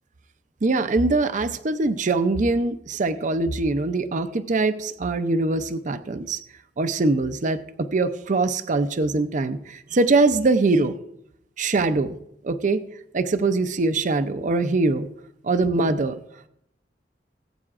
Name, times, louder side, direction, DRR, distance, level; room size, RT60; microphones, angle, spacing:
voice 1, 0.6-6.4 6.8-11.0 11.6-12.2 12.4-12.8 13.1-15.1 15.4-16.2, right 3 dB, 45° right, 10 dB, 0.5 m, -22 dB
19.0 x 8.4 x 2.5 m, 0.76 s
head